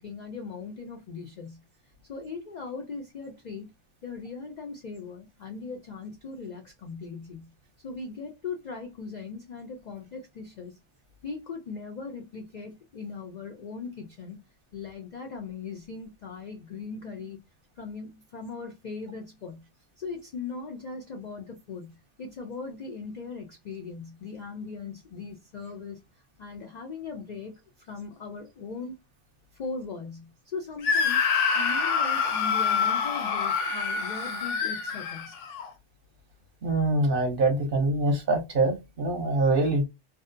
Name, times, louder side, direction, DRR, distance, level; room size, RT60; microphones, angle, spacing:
voice 1, 0.0-1.6 2.1-3.7 4.0-7.5 7.8-10.8 11.2-14.4 14.7-17.4 17.8-19.6 20.0-26.0 26.4-27.5 27.8-28.9 29.5-31.3 31.5-35.4, left 4 dB, 60° left, 0.4 m, -39 dB
Screaming, 30.8-35.7, left 6 dB, 80° left, 1.0 m, -26 dB
voice 2, 36.6-39.8, right 2 dB, 55° right, 0.8 m, -24 dB
2.6 x 2.0 x 2.4 m
omnidirectional pair, 1.2 m